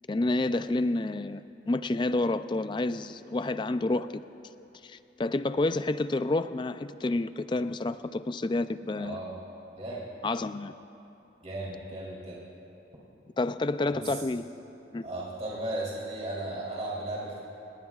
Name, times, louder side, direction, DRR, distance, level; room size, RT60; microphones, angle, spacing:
voice 1, 0.1-4.2 4.8-9.2 10.2-10.7 13.4-14.4 14.9-15.0, left 2 dB, 25° left, 12 dB, 0.4 m, -29 dB
voice 2, 8.9-9.4 9.8-10.0 11.4-12.4 13.9-14.2 15.0-17.4, right 1 dB, 35° right, -7 dB, 3.2 m, -36 dB
29.0 x 19.0 x 2.4 m, 2.9 s
head